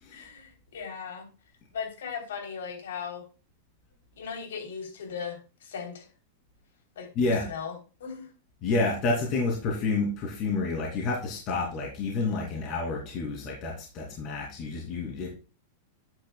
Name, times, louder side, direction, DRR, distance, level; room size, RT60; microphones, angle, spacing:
voice 1, 0.1-1.3 1.7-3.2 4.2-6.1 6.9-7.1 7.4-8.3, left 6 dB, 90° left, 3 dB, 3.3 m, -38 dB
voice 2, 7.2-7.5 8.6-15.3, left 3 dB, 35° left, -1 dB, 2.7 m, -29 dB
10.5 x 9.2 x 2.3 m, 0.33 s
supercardioid pair, 150°, 0 cm